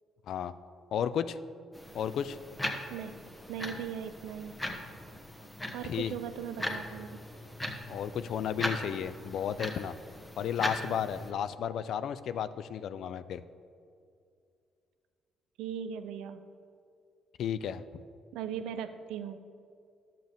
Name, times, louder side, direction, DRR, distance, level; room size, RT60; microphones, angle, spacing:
voice 1, 0.9-1.4 1.9-2.4 5.9-6.1 7.9-9.9 10.4-13.4 17.4-17.8, left 8 dB, 70° left, 14 dB, 0.4 m, -33 dB
sound 1, 1.7-11.3, left 1 dB, 15° left, 1.3 m, -39 dB
voice 2, 3.5-4.6 5.7-7.2 15.6-16.4 18.3-19.4, right 8 dB, 85° right, 10 dB, 0.5 m, -38 dB
11.0 x 7.5 x 3.5 m, 2.4 s
supercardioid pair, 60°, 0 cm